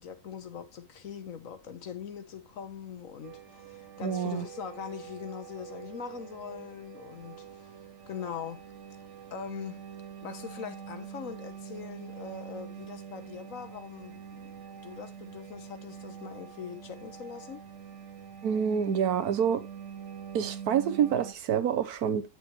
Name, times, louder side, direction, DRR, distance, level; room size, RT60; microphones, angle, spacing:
voice 1, 0.0-7.8 8.1-8.6 9.3-9.8 10.2-17.6, left 7 dB, 60° left, 1.4 m, -42 dB
sound 1, 3.2-21.3, right 8 dB, 55° right, 1.0 m, -45 dB
voice 2, 4.0-4.4 18.4-19.6 20.3-22.2, right 8 dB, 75° right, 1.4 m, -27 dB
9.2 x 7.7 x 3.1 m
omnidirectional pair, 1.6 m